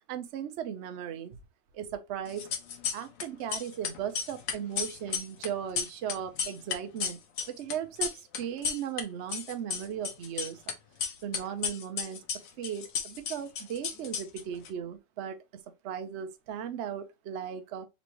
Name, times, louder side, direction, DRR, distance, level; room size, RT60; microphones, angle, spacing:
voice 1, 0.1-1.4 1.7-2.5 2.9-7.2 7.5-10.7 11.2-15.4 15.8-17.9, right 9 dB, 65° right, 0.7 m, -37 dB
sound 1, 2.3-3.2 3.5-9.0 9.3-10.7 11.0-14.7, left 7 dB, 80° left, 1.5 m, -33 dB
4.1 x 3.2 x 3.0 m
omnidirectional pair, 1.9 m